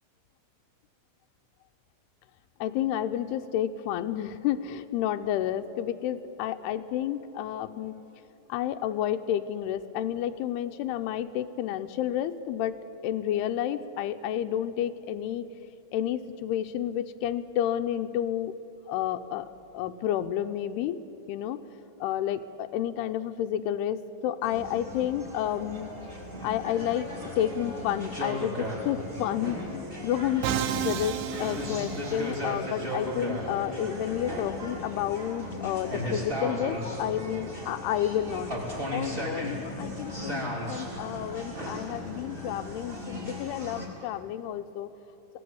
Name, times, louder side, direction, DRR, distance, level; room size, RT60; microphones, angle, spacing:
voice 1, 2.6-8.0 8.5-12.8 13.0-15.5 15.9-18.5 18.9-21.0 21.3-21.6 22.0-24.0 24.2-25.9 26.4-27.1 27.4-44.9, left 11 dB, 85° left, 8 dB, 2.8 m, -30 dB
sound 1, 24.4-43.9, equal, 15° right, 3.3 m, -36 dB
sound 2, 24.9-29.9, equal, 40° right, 6.9 m, -52 dB
Musical instrument, 30.4-32.5, right 10 dB, 80° right, 2.7 m, -31 dB
25.5 x 17.5 x 7.9 m, 2.9 s
omnidirectional pair, 4.6 m